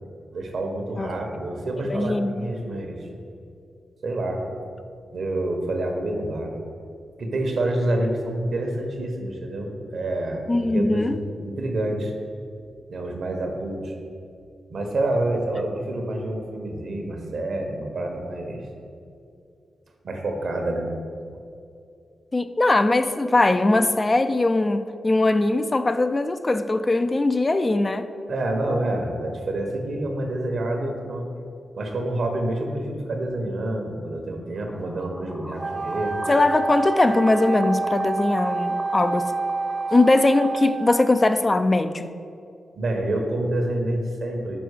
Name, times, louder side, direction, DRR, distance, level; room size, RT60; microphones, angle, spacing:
voice 1, 0.3-3.1 4.0-4.5 5.1-6.5 7.2-12.1 12.9-13.9 14.7-18.6 20.0-20.9 28.3-31.3 31.8-36.2 42.7-44.6, right 1 dB, 70° right, 3 dB, 1.1 m, -27 dB
voice 2, 1.8-2.5 10.5-11.2 22.3-28.1 36.3-39.3 39.9-42.1, left 2 dB, 30° left, 9 dB, 0.4 m, -21 dB
sound 1, 34.5-40.6, equal, 10° left, 0.8 m, -42 dB
Wind instrument woodwind instrument, 35.6-41.5, right 3 dB, 50° right, 0.4 m, -28 dB
6.1 x 4.5 x 6.4 m, 2.5 s
cardioid pair, 60°, 0 cm